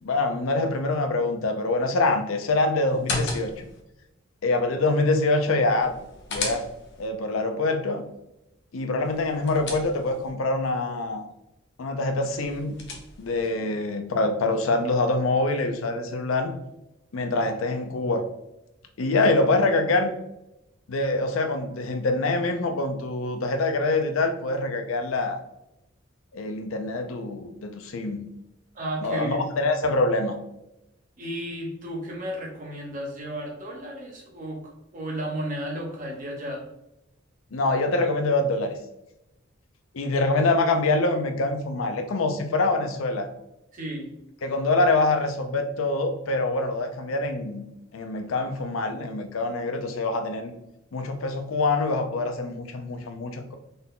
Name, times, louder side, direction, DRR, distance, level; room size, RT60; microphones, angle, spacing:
voice 1, 0.0-3.7 4.4-5.9 6.3-6.7 7.0-8.0 8.7-11.2 11.8-12.8 13.2-16.5 17.1-18.2 19.0-20.1 20.9-25.4 26.3-28.2 29.0-30.4 37.5-38.8 39.9-43.3 44.4-47.6 47.9-50.5 50.9-53.6, left 2 dB, 90° left, 7 dB, 0.5 m, -25 dB
sound 1, 2.9-3.8 5.8-7.1 9.1-10.3 12.3-13.4, left 3 dB, 60° left, 0.8 m, -34 dB
voice 2, 28.7-29.4 31.2-34.6 34.9-36.6 43.7-44.1, right 1 dB, 40° right, -1 dB, 1.0 m, -33 dB
4.0 x 3.7 x 2.2 m, 0.88 s
head